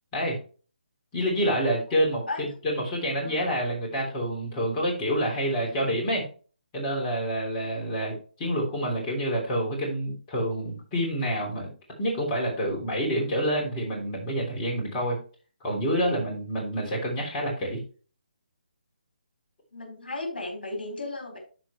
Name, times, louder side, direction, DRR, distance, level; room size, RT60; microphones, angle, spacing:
voice 1, 1.1-6.3 6.7-11.7 12.0-15.2 15.6-17.8, equal, 20° left, -2 dB, 3.4 m, -28 dB
voice 2, 1.9-2.4 3.2-3.4 7.5-7.9 19.7-21.4, left 2 dB, 65° left, 1 dB, 4.4 m, -36 dB
13.0 x 4.6 x 3.1 m, 0.38 s
figure-of-eight pair, 145°, 5 cm